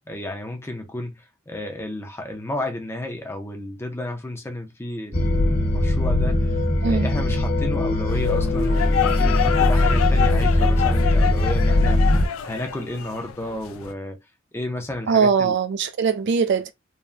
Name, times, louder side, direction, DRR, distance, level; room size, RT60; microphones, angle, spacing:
voice 1, 0.1-6.6 6.8-14.2 14.5-15.6, left 1 dB, 10° left, 0.5 m, -32 dB
sound 1, 5.1-12.3, left 1 dB, 45° left, 1.0 m, -20 dB
sound 2, 8.1-13.9, left 9 dB, 90° left, 0.4 m, -27 dB
voice 2, 15.1-16.7, right 5 dB, 55° right, 0.3 m, -21 dB
3.2 x 2.1 x 2.5 m
head